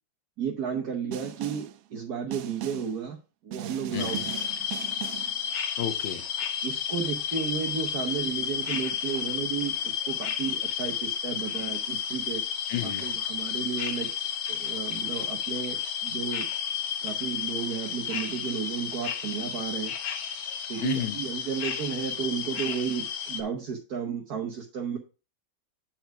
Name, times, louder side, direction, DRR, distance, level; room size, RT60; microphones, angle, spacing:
voice 1, 0.4-3.2 3.4-4.7 6.6-12.4 12.8-14.1 14.5-16.5 17.0-19.9 20.7-25.0, right 7 dB, 55° right, 1.4 m, -33 dB
Snare drum, 1.1-1.8 2.3-3.0 3.5-5.4, right 13 dB, 85° right, 0.7 m, -38 dB
voice 2, 3.9-4.2 5.8-6.3 12.7-13.1 20.8-21.2, left 10 dB, 70° left, 1.5 m, -31 dB
sound 1, 4.0-23.4, left 8 dB, 85° left, 1.8 m, -32 dB
8.7 x 4.6 x 4.7 m
omnidirectional pair, 2.1 m